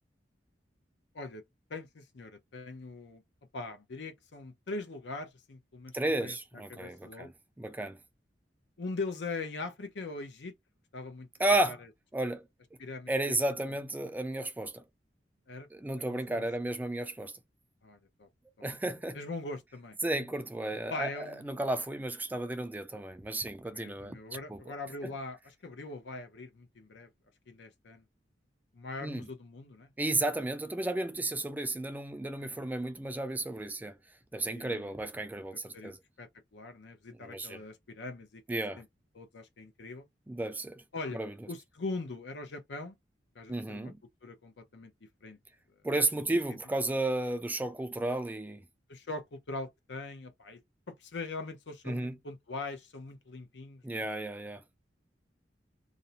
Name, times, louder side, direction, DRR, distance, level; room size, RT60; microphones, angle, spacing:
voice 1, 1.7-3.2 3.5-6.4 6.7-7.3 8.8-10.5 10.9-11.3 11.7-11.8 12.8-13.4 15.5-15.7 16.0-16.4 17.8-18.3 18.6-18.7 19.1-20.0 20.9-21.6 23.6-27.1 27.5-28.0 28.7-29.9 32.4-32.7 34.4-34.9 35.7-35.9 36.2-38.9 39.1-40.1 40.9-41.2 41.5-42.9 43.4-43.9 44.2-45.4 46.3-46.4 48.9-50.6 50.9-54.0, left 3 dB, 70° left, 0.6 m, -41 dB
voice 2, 5.9-7.3 7.6-8.0 11.4-11.8 12.1-12.4 13.1-14.8 15.7-17.3 18.6-19.2 20.0-24.7 29.0-29.3 30.0-34.0 34.3-36.0 37.2-37.6 38.5-38.8 40.3-40.8 41.1-41.3 43.5-44.0 45.8-48.6 51.9-52.2 53.8-54.8, right 2 dB, 10° right, 0.3 m, -33 dB
2.5 x 2.1 x 2.7 m
head